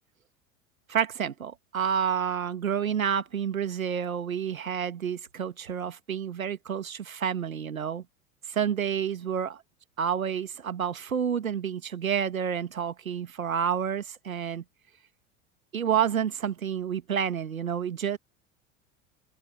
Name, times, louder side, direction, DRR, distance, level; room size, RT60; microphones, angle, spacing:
voice 1, 0.9-8.0 8.5-9.6 10.0-14.6 15.7-18.2, right 8 dB, 80° right, 2.1 m, -29 dB
figure-of-eight pair, 75°, 41 cm